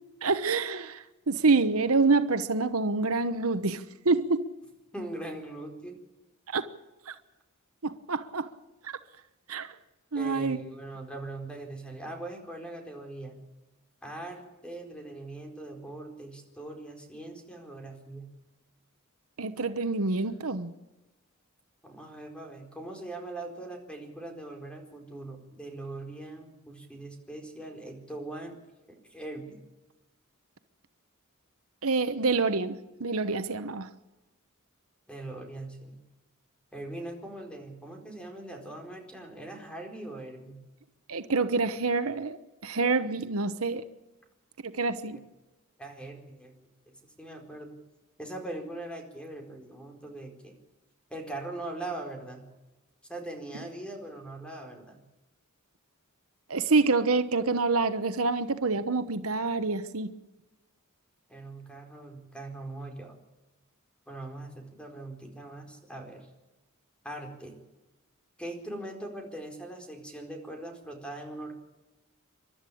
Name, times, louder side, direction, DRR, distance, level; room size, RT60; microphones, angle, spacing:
voice 1, 0.2-4.5 6.5-6.7 7.1-7.2 7.8-8.5 8.8-8.9 9.5-9.7 10.1-10.6 19.4-20.7 31.8-33.9 41.1-43.8 44.6-45.2 56.5-60.1, right 3 dB, 75° right, 1.1 m, -27 dB
voice 2, 4.9-6.0 10.1-13.4 14.0-18.3 21.8-28.6 28.9-29.6 35.1-36.0 36.7-40.6 45.8-46.6 47.0-47.8 48.2-50.5 51.1-52.4 53.1-55.0 61.3-63.2 64.1-66.3 67.0-67.6 68.4-71.5, right 2 dB, 5° left, 4.4 m, -41 dB
29.5 x 12.5 x 8.6 m
head